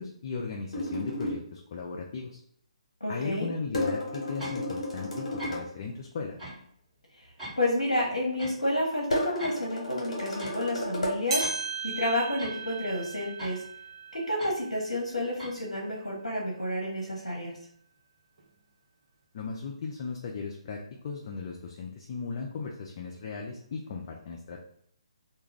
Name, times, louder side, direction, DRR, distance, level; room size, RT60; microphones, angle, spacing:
voice 1, 0.0-2.4 3.1-6.4 19.3-24.6, left 4 dB, 40° left, 0 dB, 0.4 m, -37 dB
sound 1, 0.7-1.4 3.7-5.7 9.1-11.2, left 1 dB, 65° left, 1.1 m, -32 dB
voice 2, 3.0-3.5 7.6-11.5 11.8-13.6 14.1-17.5, left 1 dB, 85° left, -2 dB, 0.7 m, -30 dB
sound 2, 4.4-4.6 5.4-5.6 6.4-6.6 7.4-7.6 8.4-8.5 9.4-9.6 10.4-10.6 11.4-11.6 12.4-12.6 13.4-13.6 14.4-14.6 15.4-15.5, right 1 dB, 5° right, 1.2 m, -40 dB
sound 3, 11.3-16.0 16.5-16.6 17.4-17.5 18.4-18.5, right 4 dB, 55° right, 0.7 m, -37 dB
2.3 x 2.2 x 3.2 m, 0.67 s
figure-of-eight pair, 140°, 4 cm